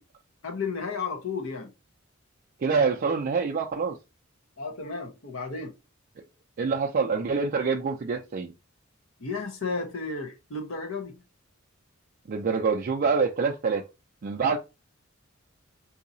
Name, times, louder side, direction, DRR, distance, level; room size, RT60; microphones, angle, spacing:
voice 1, 0.4-1.7 4.6-5.7 9.2-11.2, left 4 dB, 70° left, 0.9 m, -33 dB
voice 2, 2.6-4.0 6.6-8.5 12.3-13.8 14.2-14.6, right 5 dB, 45° right, 0.4 m, -26 dB
3.9 x 2.7 x 2.6 m
head